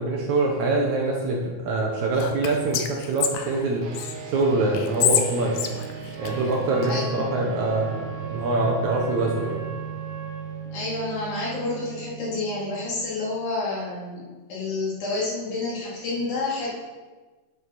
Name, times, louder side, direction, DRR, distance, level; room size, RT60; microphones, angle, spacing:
voice 1, 0.0-3.8 4.3-5.7 6.2-9.7, right 2 dB, 65° right, -1 dB, 2.1 m, -24 dB
Whispering, 2.1-4.1 4.7-6.9, left 9 dB, 75° left, 2.2 m, -27 dB
sound 1, 3.8-13.6, right 7 dB, 85° right, 3.2 m, -38 dB
Wind instrument woodwind instrument, 6.1-10.6, right 3 dB, 25° right, 2.5 m, -39 dB
voice 2, 6.9-7.5 10.7-16.7, left 3 dB, 55° left, -6 dB, 4.4 m, -29 dB
11.5 x 7.5 x 4.1 m, 1.3 s
omnidirectional pair, 4.3 m